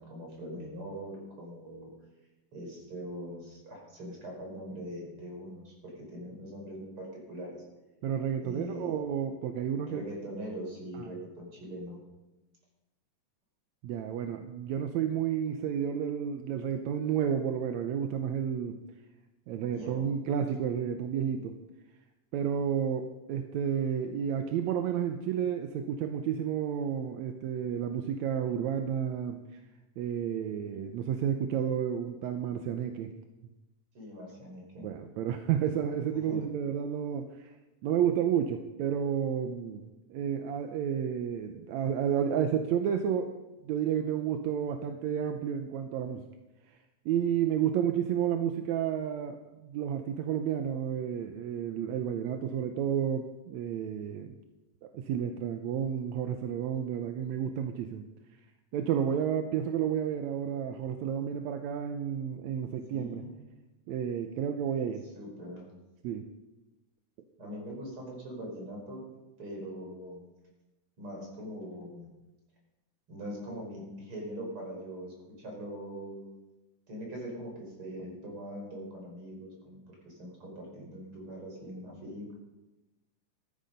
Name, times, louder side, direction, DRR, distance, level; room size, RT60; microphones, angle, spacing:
voice 1, 0.0-1.9 2.5-7.6 8.4-9.0 9.9-12.0 19.5-20.1 33.9-34.9 36.3-36.4 62.9-63.3 65.1-65.7 67.4-69.0 69.4-70.5 71.0-72.1 73.1-76.3 76.9-82.3, equal, 40° right, -1 dB, 5.7 m, -42 dB
voice 2, 8.0-10.0 10.9-11.2 13.8-18.8 19.5-21.6 22.3-29.6 30.0-33.1 34.8-37.6 37.8-43.3 43.6-46.2 46.7-46.8 47.1-54.4 54.8-58.0 58.7-63.2 63.9-65.0 66.0-66.3, right 8 dB, 75° right, 6 dB, 1.9 m, -31 dB
16.0 x 14.0 x 5.3 m, 1.0 s
omnidirectional pair, 3.7 m